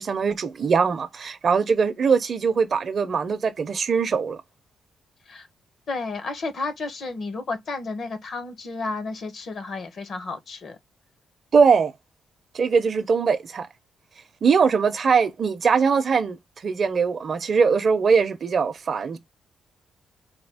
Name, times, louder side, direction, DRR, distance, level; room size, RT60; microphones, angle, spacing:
voice 1, 0.0-4.4 11.5-11.9 12.5-13.7 14.4-16.4 16.6-19.2, right 5 dB, 45° right, 0.6 m, -21 dB
voice 2, 5.9-10.8, left 3 dB, 55° left, 0.9 m, -32 dB
4.3 x 2.3 x 3.4 m
cardioid pair, 115°, 0 cm